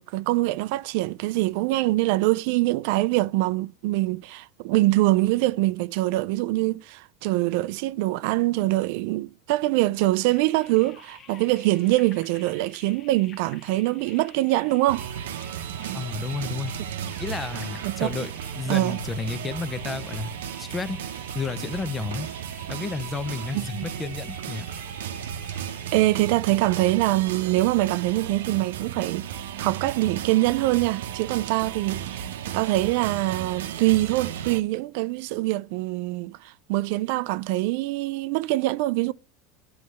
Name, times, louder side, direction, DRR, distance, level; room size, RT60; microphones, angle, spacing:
voice 1, 0.0-15.1 15.8-16.0 16.8-16.9 17.8-18.1 18.7-19.0 23.5-23.9 25.9-39.1, right 18 dB, 65° right, 0.3 m, -24 dB
sound 1, 10.2-26.2, left 6 dB, 35° left, 1.1 m, -50 dB
sound 2, 14.9-34.6, right 9 dB, 90° right, 0.7 m, -35 dB
voice 2, 15.9-16.7 17.2-20.3 20.6-21.0 21.3-22.3 22.7-24.6, left 4 dB, 20° left, 0.6 m, -31 dB
9.4 x 3.2 x 6.6 m
supercardioid pair, 130°, 0 cm